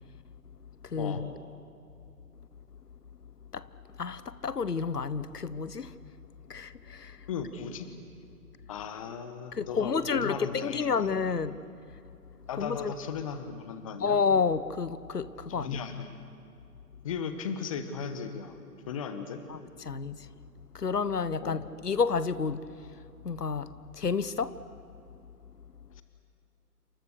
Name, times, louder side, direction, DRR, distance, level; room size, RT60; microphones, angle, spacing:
voice 1, 0.8-1.3 3.5-3.7 4.0-6.0 6.5-7.3 9.5-11.6 12.6-12.9 14.0-15.8 19.5-20.3 20.7-22.7 23.2-24.6, left 5 dB, 75° left, 1.3 m, -30 dB
voice 2, 7.3-7.9 8.7-11.1 12.5-14.2 15.6-16.2 17.0-18.6 18.9-19.4 21.4-21.6, left 6 dB, 20° left, 1.3 m, -36 dB
28.5 x 25.0 x 6.6 m
figure-of-eight pair, 150°, 47 cm